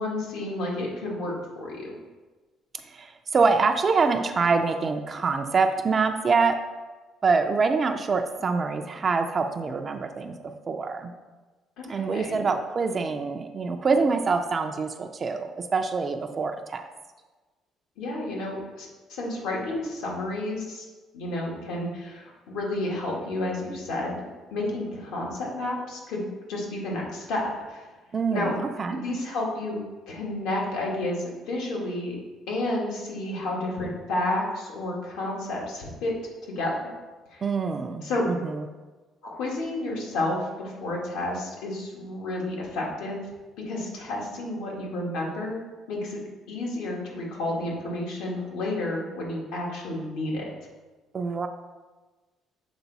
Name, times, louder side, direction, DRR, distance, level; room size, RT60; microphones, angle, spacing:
voice 1, 0.0-1.9 11.8-12.4 13.0-13.1 18.0-20.9 21.1-24.2 24.5-27.9 28.3-28.5 28.9-29.8 30.1-32.2 32.5-36.1 36.5-36.7 37.3-37.4 38.0-38.2 39.2-43.2 43.7-45.6 45.9-46.2 46.5-50.5, left 1 dB, 90° left, -3 dB, 1.8 m, -31 dB
voice 2, 2.9-6.6 7.2-10.4 10.7-11.1 11.9-16.8 28.1-28.5 28.8-29.0 37.4-38.7 51.1-51.5, right 4 dB, 25° right, 5 dB, 0.4 m, -25 dB
7.0 x 4.6 x 4.0 m, 1.3 s
cardioid pair, 160°, 0 cm